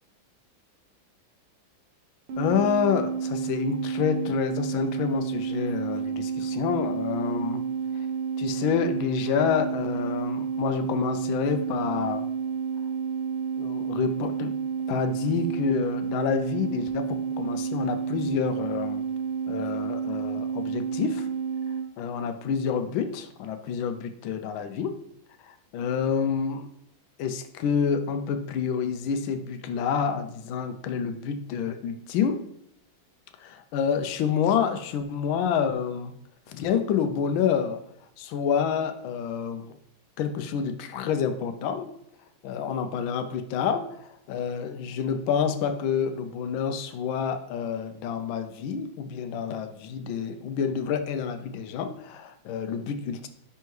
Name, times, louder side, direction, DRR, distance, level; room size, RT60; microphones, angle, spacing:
sound 1, 2.3-21.9, right 6 dB, 75° right, 1.4 m, -30 dB
voice 1, 2.4-7.6 8.4-12.3 13.6-14.5 14.9-19.0 19.5-21.3 22.0-25.0 25.4-26.7 27.2-32.4 33.4-36.1 36.5-37.8 38.2-39.7 40.2-41.9 42.4-53.3, left 7 dB, 80° left, 8 dB, 1.4 m, -28 dB
9.8 x 3.4 x 3.1 m, 0.75 s
omnidirectional pair, 2.2 m